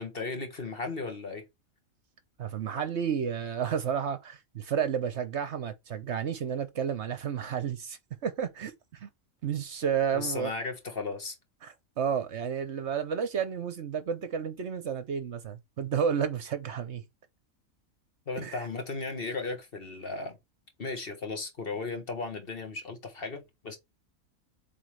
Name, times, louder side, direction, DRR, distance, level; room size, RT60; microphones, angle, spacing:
voice 1, 0.0-1.4 10.1-11.4 18.3-20.4 20.8-23.8, left 3 dB, 45° left, 1.6 m, -35 dB
voice 2, 2.4-9.1 9.4-10.5 11.6-17.0 18.4-18.6, right 7 dB, 60° right, 1.0 m, -31 dB
7.8 x 3.8 x 3.3 m
omnidirectional pair, 1.4 m